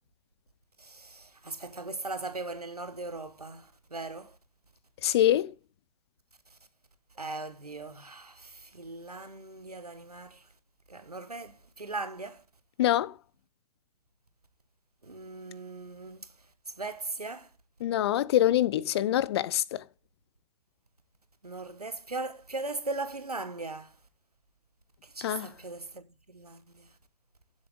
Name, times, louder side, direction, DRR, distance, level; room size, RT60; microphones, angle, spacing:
voice 1, 0.8-4.3 7.2-10.4 10.9-12.4 15.0-16.3 16.8-17.5 21.4-23.9 25.0-26.9, right 3 dB, 80° right, 1.5 m, -39 dB
voice 2, 5.0-5.5 12.8-13.1 17.8-19.8 25.2-25.5, left 12 dB, 45° left, 0.8 m, -25 dB
15.5 x 8.2 x 3.8 m
figure-of-eight pair, 115°, 19 cm